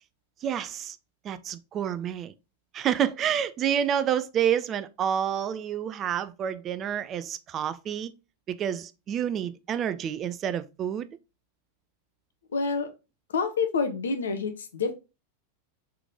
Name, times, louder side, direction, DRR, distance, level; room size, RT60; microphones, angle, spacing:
voice 1, 0.4-1.0 1.2-2.3 2.7-8.1 8.5-11.1, right 9 dB, 30° right, 0.3 m, -28 dB
voice 2, 12.5-12.9 13.3-14.9, left 5 dB, 70° left, 0.7 m, -27 dB
3.5 x 3.1 x 3.6 m
figure-of-eight pair, 90°, 0 cm